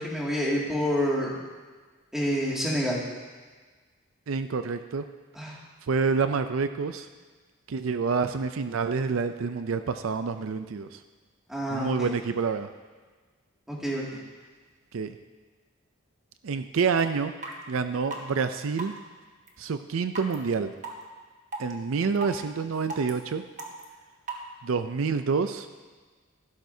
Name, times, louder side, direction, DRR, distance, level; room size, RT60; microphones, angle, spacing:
voice 1, 0.0-1.4 2.1-3.0 5.4-5.6 11.5-12.1 13.7-14.0, equal, ahead, -5 dB, 2.2 m, -28 dB
voice 2, 4.3-5.0 5.9-7.1 7.7-11.0 11.7-12.7 14.9-15.2 16.4-17.3 17.7-18.9 19.6-20.7 21.6-23.4 24.6-25.7, right 5 dB, 75° right, 9 dB, 0.5 m, -27 dB
sound 1, 17.0-17.1 17.4-17.5 18.1-18.2 18.8-19.0 19.5-19.6 20.2-20.4 20.8-20.9 21.5-21.7 22.2-22.4 22.9-23.1 23.6-23.8 24.3-24.4, right 3 dB, 35° right, 1.3 m, -35 dB
16.0 x 12.0 x 2.7 m, 1.4 s
head